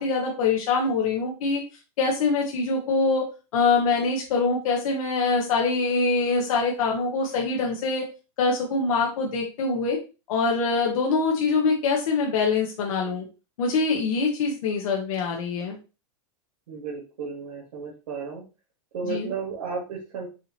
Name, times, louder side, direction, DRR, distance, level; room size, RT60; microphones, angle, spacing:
voice 1, 0.0-1.6 2.0-3.2 3.5-8.0 8.4-10.0 10.3-13.2 13.6-15.8 19.0-19.3, left 4 dB, 75° left, -1 dB, 1.1 m, -24 dB
voice 2, 16.7-18.4 18.9-20.3, right 5 dB, 90° right, -4 dB, 1.5 m, -33 dB
4.9 x 2.6 x 2.8 m, 0.31 s
supercardioid pair, 130°, 18 cm